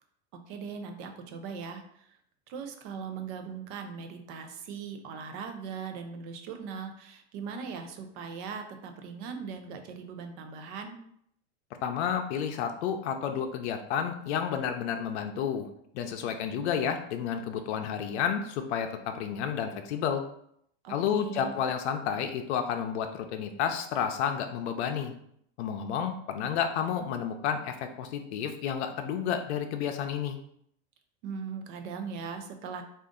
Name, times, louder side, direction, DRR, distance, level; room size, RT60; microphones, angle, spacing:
voice 1, 0.3-2.2 2.5-11.0 20.8-21.5 31.2-32.8, right 5 dB, 50° right, 6 dB, 0.6 m, -39 dB
voice 2, 11.8-15.7 15.9-20.2 20.9-25.1 25.6-30.4, left 8 dB, 80° left, 5 dB, 0.6 m, -31 dB
3.8 x 2.5 x 3.6 m, 0.70 s
supercardioid pair, 160°, 33 cm